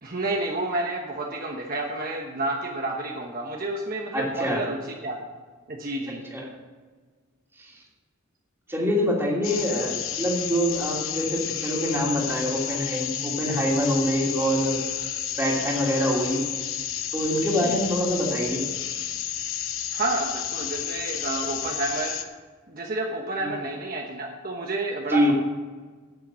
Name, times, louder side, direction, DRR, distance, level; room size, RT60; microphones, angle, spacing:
voice 1, 0.0-5.2 5.7-6.2 17.5-17.8 19.9-22.2 22.7-25.3, right 2 dB, 45° right, 0 dB, 1.1 m, -30 dB
voice 2, 4.1-4.6 6.3-6.5 7.6-7.7 8.7-14.8 15.3-16.4 17.1-18.6 23.4-23.5 25.1-25.3, equal, 10° right, -3 dB, 2.6 m, -25 dB
sound 1, 9.4-22.2, left 10 dB, 65° left, 0.9 m, -31 dB
10.5 x 9.0 x 6.3 m, 1.4 s
head